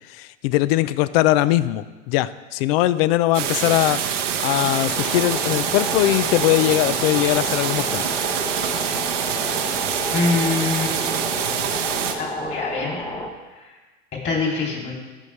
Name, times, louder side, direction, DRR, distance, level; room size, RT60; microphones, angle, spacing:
voice 1, 0.1-4.0 4.4-8.1, left 15 dB, 55° left, 17 dB, 0.5 m, -20 dB
sound 1, 3.3-12.2, right 8 dB, 85° right, 0.9 m, -25 dB
sound 2, 4.9-13.3, left 1 dB, 10° left, 0.8 m, -31 dB
voice 2, 10.1-10.9 12.2-13.1 13.6-13.7 14.2-14.9, left 4 dB, 30° left, -1 dB, 2.9 m, -24 dB
14.0 x 5.5 x 3.2 m, 1.2 s
hypercardioid pair, 100°, 36 cm